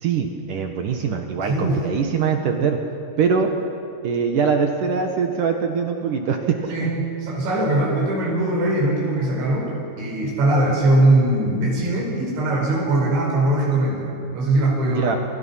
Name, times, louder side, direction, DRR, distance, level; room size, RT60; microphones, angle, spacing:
voice 1, 0.0-2.8 3.2-3.5 4.0-6.9 14.8-15.2, right 6 dB, 60° right, 4 dB, 2.5 m, -22 dB
voice 2, 1.5-1.8 6.7-15.1, right 1 dB, 85° right, -2 dB, 7.6 m, -21 dB
29.0 x 27.5 x 5.8 m, 2.7 s
omnidirectional pair, 5.2 m